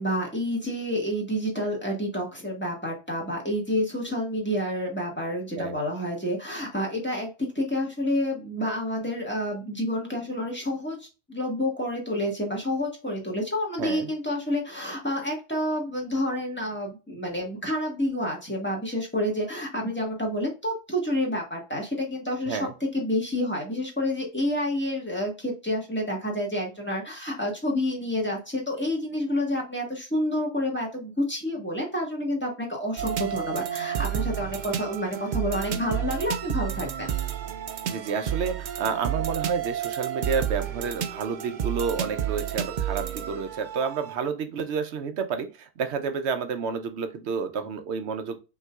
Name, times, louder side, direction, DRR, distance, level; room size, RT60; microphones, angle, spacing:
voice 1, 0.0-37.1, left 1 dB, 10° left, -1 dB, 1.4 m, -29 dB
voice 2, 13.8-14.1 22.5-22.7 37.9-48.4, right 5 dB, 75° right, 8 dB, 1.0 m, -30 dB
sound 1, 33.0-44.1, right 10 dB, 55° right, 0.6 m, -31 dB
5.4 x 3.0 x 2.3 m, 0.30 s
omnidirectional pair, 1.1 m